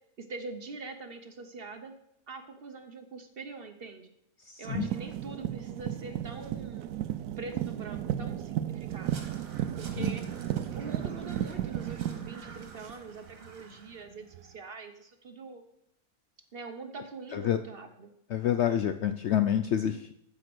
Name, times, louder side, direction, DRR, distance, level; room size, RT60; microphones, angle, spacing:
voice 1, 0.2-1.9 2.3-4.1 4.6-6.9 7.4-9.2 9.8-10.2 10.8-15.6 16.5-18.1, right 3 dB, 45° right, 7 dB, 1.0 m, -43 dB
voice 2, 4.4-4.9 10.0-10.1 17.3-17.6 18.3-20.1, left 10 dB, 65° left, 10 dB, 0.7 m, -28 dB
sound 1, 4.7-13.5 14.3-14.4, right 11 dB, 85° right, 1.1 m, -34 dB
Crow, 9.0-14.0, right 4 dB, 65° right, 1.8 m, -51 dB
14.0 x 5.1 x 6.1 m, 0.77 s
omnidirectional pair, 1.6 m